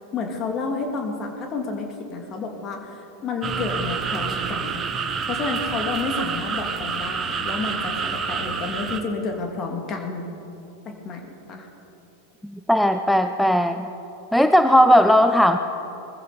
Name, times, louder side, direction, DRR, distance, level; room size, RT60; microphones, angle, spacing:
voice 1, 0.1-4.9 5.3-10.3 10.8-11.7, left 4 dB, 35° left, 2 dB, 2.6 m, -30 dB
sound 1, 3.4-9.0, right 5 dB, 25° right, 1.2 m, -28 dB
voice 2, 12.4-13.9 14.3-15.6, equal, ahead, 8 dB, 0.6 m, -17 dB
21.0 x 15.0 x 4.3 m, 2.9 s
figure-of-eight pair, 90°, 0 cm